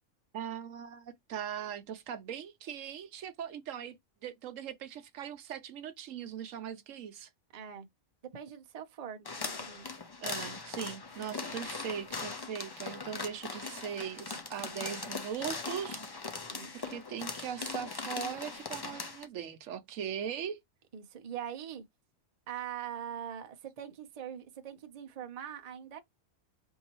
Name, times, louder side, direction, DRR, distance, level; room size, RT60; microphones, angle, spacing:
voice 1, 0.3-7.3 10.2-16.0 16.7-20.6, right 8 dB, 80° right, 1.1 m, -40 dB
voice 2, 7.5-7.9 8.3-9.9 16.5-16.9 20.9-21.8 22.5-26.0, right 9 dB, 40° right, 0.6 m, -42 dB
sound 1, 9.3-19.3, left 4 dB, 35° left, 0.4 m, -40 dB
4.6 x 2.6 x 2.9 m
omnidirectional pair, 1.3 m